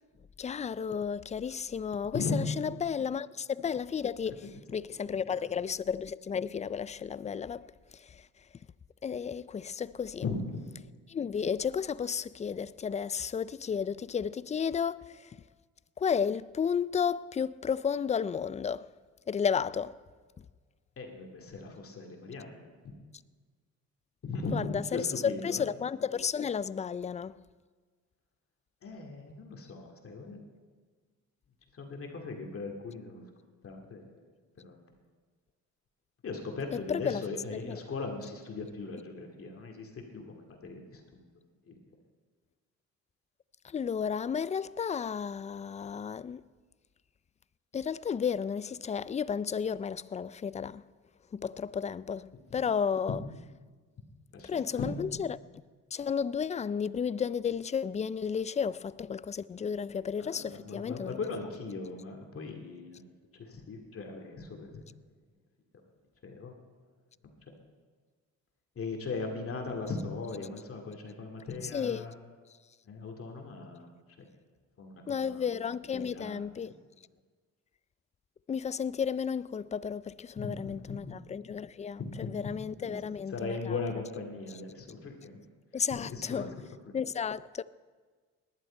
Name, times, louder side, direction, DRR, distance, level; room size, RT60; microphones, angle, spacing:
voice 1, 0.4-7.7 7.9-8.3 9.0-10.2 11.1-15.4 16.0-18.9 19.3-19.9 24.5-27.4 36.7-37.2 37.5-37.8 43.6-46.4 47.7-50.8 51.3-53.2 54.4-55.4 55.9-61.2 71.7-72.1 75.1-76.7 78.5-83.8 85.7-86.5 86.9-87.6, left 7 dB, 25° left, 0.3 m, -33 dB
voice 2, 10.2-10.6 21.0-22.6 24.2-25.6 28.8-30.5 31.7-33.2 33.6-34.1 34.6-34.8 36.2-41.2 41.6-41.8 53.1-53.2 54.3-54.9 60.2-63.0 63.4-64.7 66.2-66.5 67.2-67.3 68.8-72.1 72.9-73.9 74.8-75.4 75.9-76.4 80.4-81.0 82.0-82.3 82.8-85.4 85.9-86.5, left 4 dB, 45° left, 2.3 m, -38 dB
19.0 x 11.5 x 4.4 m
cardioid pair, 90°, 30 cm